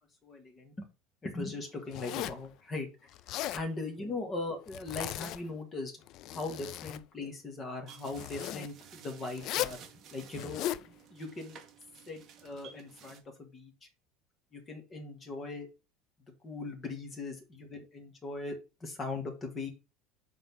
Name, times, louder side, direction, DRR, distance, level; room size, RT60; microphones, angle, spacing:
voice 1, 0.2-0.9 1.2-3.1 3.5-5.9 6.3-9.8 10.1-11.6 12.1-13.9 14.5-15.7 16.4-19.7, left 3 dB, 20° left, 3 dB, 1.7 m, -39 dB
Zipper (clothing), 1.9-2.5 3.1-3.7 4.7-5.4 6.0-7.0 8.1-8.7 9.4-9.8 10.3-10.9, left 13 dB, 45° left, 0.3 m, -37 dB
sound 1, 7.9-13.2, right 8 dB, 30° right, 1.1 m, -54 dB
5.9 x 3.8 x 5.9 m, 0.29 s
cardioid pair, 175°, 0 cm